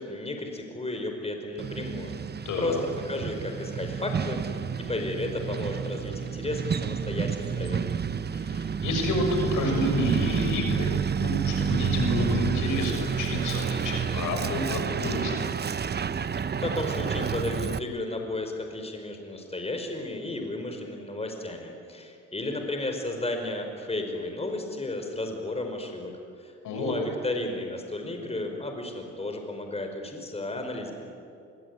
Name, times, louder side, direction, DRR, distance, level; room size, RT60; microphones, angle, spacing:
voice 1, 0.0-2.2 2.6-2.8 3.0-4.6 4.9-7.8 16.6-26.1 26.4-30.9, left 2 dB, 20° left, 4 dB, 5.0 m, -33 dB
Truck, 1.6-17.8, right 7 dB, 35° right, 0.9 m, -29 dB
voice 2, 2.4-2.8 8.3-9.3 9.5-15.4 26.6-26.9, left 1 dB, 85° left, 3 dB, 6.4 m, -29 dB
26.0 x 22.5 x 9.6 m, 2.5 s
cardioid pair, 90°, 30 cm